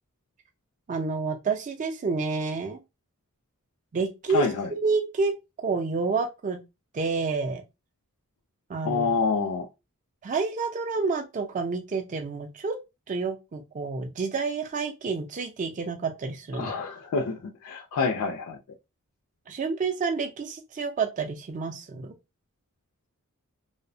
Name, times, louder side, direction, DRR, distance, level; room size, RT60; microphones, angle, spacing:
voice 1, 0.9-2.8 3.9-5.3 5.6-6.6 6.9-7.6 8.7-9.1 10.2-12.8 13.1-16.7 19.5-22.1, right 4 dB, 35° right, 0.4 m, -29 dB
voice 2, 4.3-4.7 8.8-9.7 16.6-18.6, left 4 dB, 65° left, 0.4 m, -27 dB
2.7 x 2.0 x 2.5 m
head